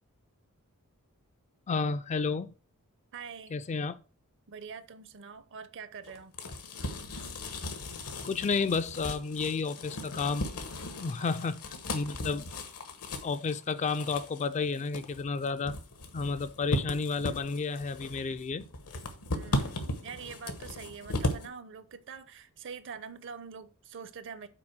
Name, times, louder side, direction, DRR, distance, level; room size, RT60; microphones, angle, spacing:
voice 1, 1.7-2.5 3.5-4.0 8.2-10.5 11.0-11.6 11.9-12.5 13.2-15.8 16.1-18.7, left 4 dB, 30° left, 0.3 m, -31 dB
voice 2, 3.1-3.6 4.5-6.3 11.2-11.3 19.3-24.5, right 6 dB, 55° right, 0.7 m, -44 dB
sound 1, 6.0-21.5, left 1 dB, 80° left, 1.1 m, -37 dB
6.0 x 4.3 x 6.1 m
head